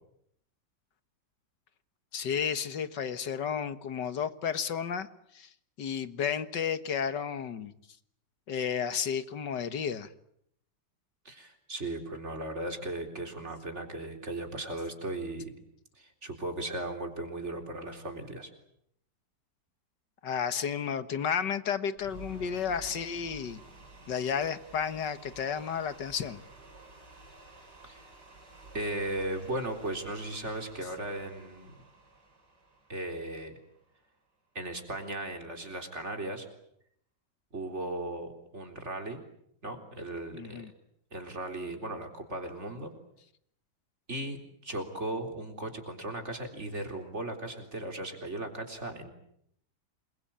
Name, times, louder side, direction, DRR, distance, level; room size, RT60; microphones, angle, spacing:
voice 1, 2.1-5.1 5.3-5.5 5.8-7.7 8.5-10.1 20.2-23.6 24.1-26.4 40.3-40.7, left 7 dB, 85° left, 2.0 m, -32 dB
voice 2, 11.3-15.5 16.0-18.5 27.8-28.0 28.7-31.7 32.9-33.6 34.5-36.5 37.5-39.2 39.6-40.6 41.1-42.9 44.1-49.1, right 1 dB, 40° right, 4.1 m, -37 dB
sound 1, 22.0-34.1, right 2 dB, 75° right, 6.1 m, -52 dB
28.0 x 22.0 x 8.9 m
omnidirectional pair, 1.8 m